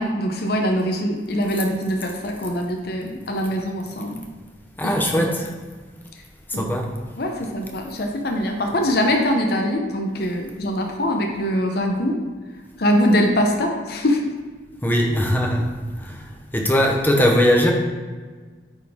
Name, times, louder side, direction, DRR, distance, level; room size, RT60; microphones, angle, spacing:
voice 1, 0.0-4.2 4.8-5.3 6.5-6.6 7.2-12.2 12.8-14.2, equal, 60° left, 2 dB, 0.8 m, -23 dB
voice 2, 4.8-5.5 6.6-6.9 14.8-15.7 16.0-16.1 16.5-17.7, equal, 10° left, 1 dB, 0.9 m, -19 dB
9.1 x 4.2 x 3.6 m, 1.4 s
head